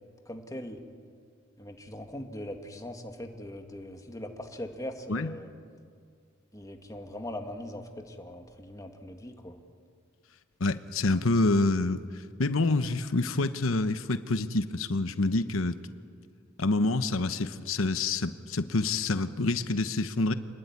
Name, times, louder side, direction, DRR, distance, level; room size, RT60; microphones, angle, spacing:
voice 1, 0.3-0.8 1.6-5.5 6.5-9.6, left 1 dB, 15° left, 4 dB, 2.0 m, -40 dB
voice 2, 10.6-12.0 12.4-15.8 16.6-20.3, left 2 dB, 90° left, 11 dB, 1.0 m, -27 dB
28.0 x 20.5 x 9.7 m, 2.2 s
head